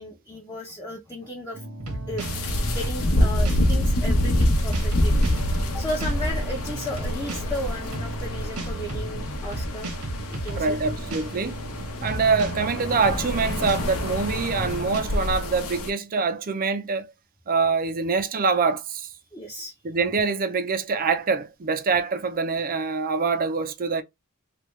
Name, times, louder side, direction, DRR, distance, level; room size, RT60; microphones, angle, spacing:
voice 1, 0.0-1.6 2.1-2.2 2.7-5.1 5.4-9.9 10.3-10.8 19.3-19.7, equal, 15° left, 0.6 m, -34 dB
sound 1, 1.5-15.0, right 2 dB, 80° right, 1.2 m, -35 dB
sound 2, 2.2-15.9, left 1 dB, 70° left, 0.8 m, -26 dB
voice 2, 10.6-11.6 12.0-17.0 17.5-19.1 19.8-24.0, right 4 dB, 40° right, 0.5 m, -25 dB
3.3 x 2.3 x 3.1 m
head